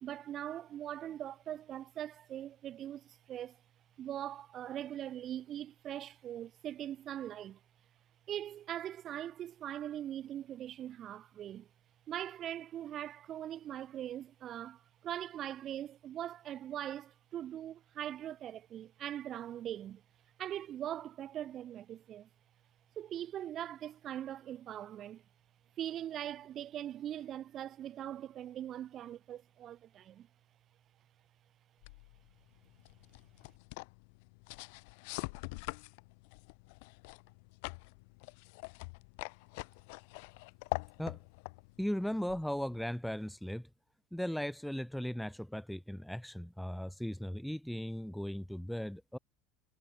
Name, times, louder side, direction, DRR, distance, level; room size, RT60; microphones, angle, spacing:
voice 1, 0.0-3.6 4.0-7.6 8.3-11.7 12.1-20.0 20.4-22.3 23.0-25.2 25.8-30.3, right 11 dB, 40° right, 2.5 m, -41 dB
sound 1, 31.8-42.9, left 31 dB, 75° left, 3.3 m, -45 dB
voice 2, 41.8-43.7 44.1-49.2, equal, ahead, 0.8 m, -37 dB
supercardioid pair, 120°, 0 cm